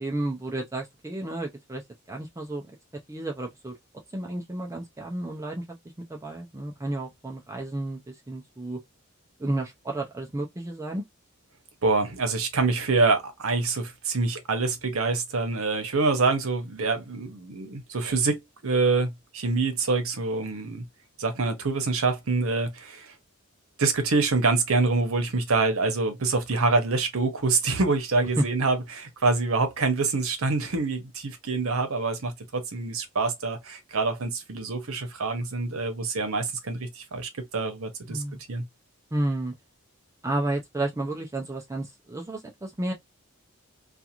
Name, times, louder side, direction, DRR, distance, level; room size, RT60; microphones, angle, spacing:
voice 1, 0.0-1.8 2.1-2.6 3.1-3.7 4.1-5.8 6.1-8.8 9.4-11.0 28.4-28.5 38.1-38.4 39.1-39.5 40.2-42.9, right 1 dB, 15° right, 0.4 m, -31 dB
voice 2, 11.8-20.8 21.2-23.1 23.8-38.2 38.5-38.6, right 3 dB, 75° right, 0.8 m, -26 dB
2.5 x 2.3 x 2.8 m
head